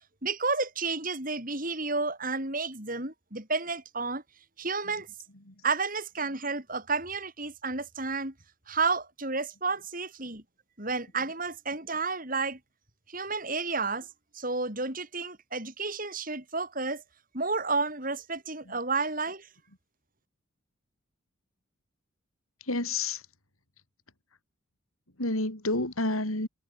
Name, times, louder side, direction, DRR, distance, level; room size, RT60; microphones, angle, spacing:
voice 1, 0.2-4.2 4.6-5.1 5.6-8.3 8.7-10.4 10.8-12.6 13.1-14.1 14.3-17.0 17.3-19.5, right 4 dB, 40° right, 6.2 m, -31 dB
voice 2, 22.6-23.2 25.2-26.5, left 2 dB, 85° left, 5.1 m, -29 dB
head